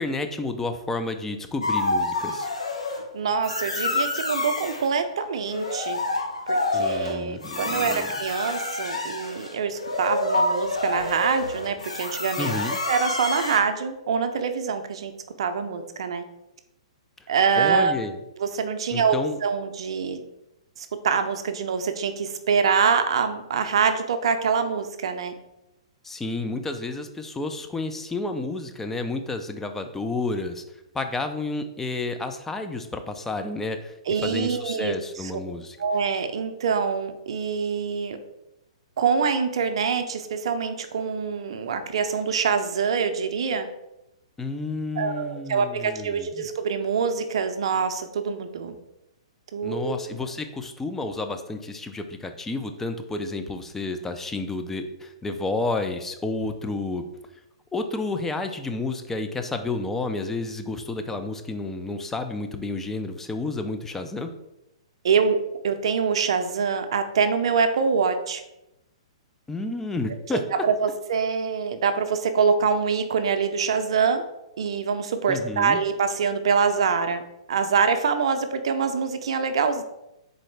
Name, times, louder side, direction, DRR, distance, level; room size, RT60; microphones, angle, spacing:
voice 1, 0.0-2.5 6.7-8.1 12.4-12.8 17.6-18.2 18.9-19.4 26.0-30.6 30.9-33.9 34.2-35.8 44.4-46.3 49.6-57.1 57.7-64.3 69.5-70.7 75.3-75.8, left 3 dB, 10° left, 6 dB, 0.4 m, -30 dB
sound 1, 1.6-3.0 3.4-4.9 5.4-13.6, left 2 dB, 90° left, 0.7 m, -28 dB
voice 2, 3.1-6.0 6.5-12.5 12.9-15.1 15.4-16.2 17.3-17.9 18.4-19.2 19.4-20.2 20.8-25.3 34.1-35.3 35.8-38.2 39.0-43.7 45.0-48.8 49.5-49.9 65.0-65.4 65.6-68.4 70.3-74.2 74.6-77.2 77.5-79.8, right 6 dB, 65° right, 8 dB, 0.5 m, -25 dB
3.9 x 3.7 x 3.3 m, 0.89 s
hypercardioid pair, 120°, 3 cm